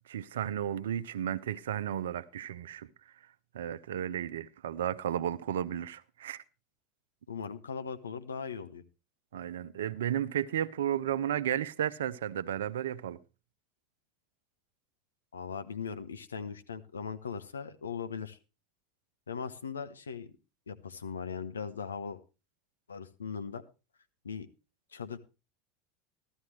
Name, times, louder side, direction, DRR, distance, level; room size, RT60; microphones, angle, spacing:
voice 1, 0.1-2.9 3.5-6.4 9.3-13.2, right 10 dB, 70° right, 0.5 m, -33 dB
voice 2, 7.3-8.8 15.3-18.4 19.3-20.3 20.7-22.2 22.9-23.6 24.2-24.5 24.9-25.2, left 6 dB, 80° left, 0.8 m, -39 dB
14.0 x 13.0 x 3.2 m
figure-of-eight pair, 75°, 0 cm